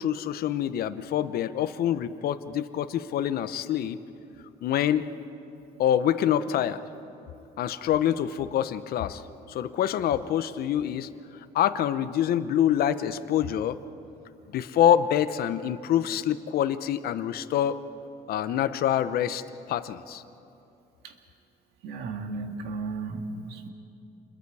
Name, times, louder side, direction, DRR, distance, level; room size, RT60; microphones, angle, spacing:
voice 1, 0.0-4.0 4.6-5.1 5.8-6.8 7.6-9.2 9.5-11.1 11.5-13.8 14.5-17.8 18.3-20.2, left 10 dB, 65° left, 13 dB, 0.8 m, -26 dB
voice 2, 21.8-23.7, right 3 dB, 80° right, 5 dB, 1.9 m, -35 dB
28.0 x 21.5 x 4.8 m, 2.7 s
cardioid pair, 110°, 17 cm